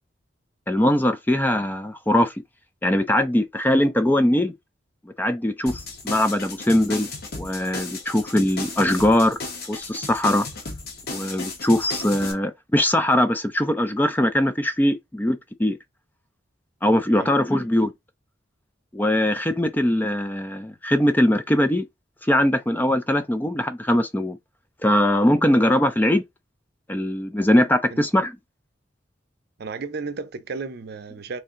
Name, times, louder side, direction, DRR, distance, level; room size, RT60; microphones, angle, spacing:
voice 1, 0.7-2.3 2.8-4.5 5.2-7.1 7.3-9.4 9.7-10.5 11.1-15.8 16.8-17.9 18.9-21.9 22.2-24.4 24.8-26.2 26.9-28.3, left 1 dB, 10° left, 0.3 m, -21 dB
sound 1, 5.7-12.3, left 3 dB, 55° left, 1.2 m, -34 dB
voice 2, 29.6-31.4, right 4 dB, 60° right, 0.6 m, -33 dB
3.2 x 2.7 x 3.7 m
head